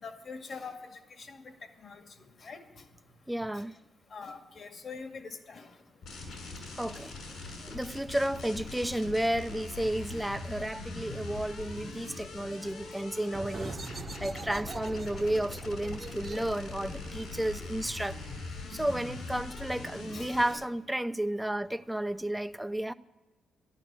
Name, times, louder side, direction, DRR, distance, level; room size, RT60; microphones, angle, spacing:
voice 1, 0.0-2.9 3.5-3.6 4.1-5.8 20.1-20.6, left 4 dB, 50° left, 2.1 m, -45 dB
voice 2, 3.3-3.8 6.8-7.1 7.6-18.2 18.7-22.9, right 1 dB, 5° right, 0.6 m, -32 dB
sound 1, 6.0-20.5, left 3 dB, 85° left, 7.0 m, -42 dB
sound 2, 13.3-18.7, right 4 dB, 35° right, 1.0 m, -44 dB
13.0 x 12.0 x 7.5 m
cardioid pair, 95°, 0 cm